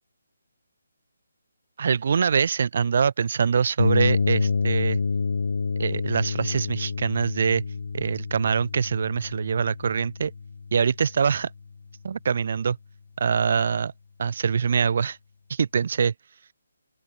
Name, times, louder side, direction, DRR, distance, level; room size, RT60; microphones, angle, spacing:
voice 1, 1.8-5.0 5.8-7.6 7.9-10.3 10.7-11.5 12.0-12.8 13.2-13.9 14.2-15.2 15.5-16.1, right 6 dB, 40° right, 0.9 m, -24 dB
sound 1, 3.8-11.5, left 5 dB, 55° left, 0.9 m, -28 dB
open air
hypercardioid pair, 175°, 0 cm